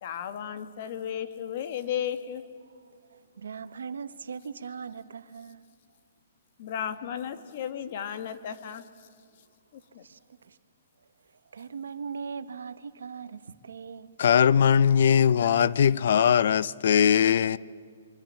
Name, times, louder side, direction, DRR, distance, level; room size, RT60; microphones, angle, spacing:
voice 1, 0.0-2.4 6.6-8.8 10.0-10.1, left 9 dB, 45° left, 1.6 m, -34 dB
voice 2, 2.6-5.6 10.0-10.6 11.5-14.1, right 6 dB, 90° right, 1.3 m, -40 dB
voice 3, 14.2-17.6, left 8 dB, 60° left, 0.6 m, -20 dB
26.5 x 23.5 x 7.5 m
hypercardioid pair, 160°, 0 cm